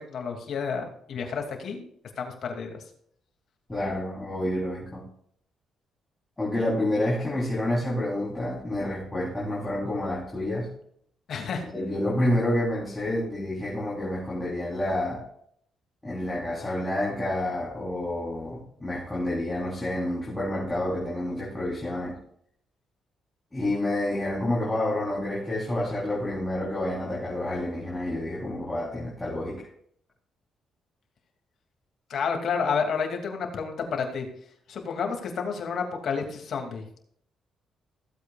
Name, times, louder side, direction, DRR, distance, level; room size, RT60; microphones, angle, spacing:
voice 1, 0.1-1.9 2.2-2.8 11.3-11.7 32.1-34.3 34.7-36.8, left 5 dB, 60° left, 3 dB, 2.5 m, -30 dB
voice 2, 3.7-5.0 6.4-10.7 11.7-15.3 16.0-22.2 23.5-29.7, left 1 dB, 15° left, -6 dB, 3.6 m, -29 dB
16.0 x 8.3 x 2.4 m, 0.66 s
cardioid pair, 90°, 0 cm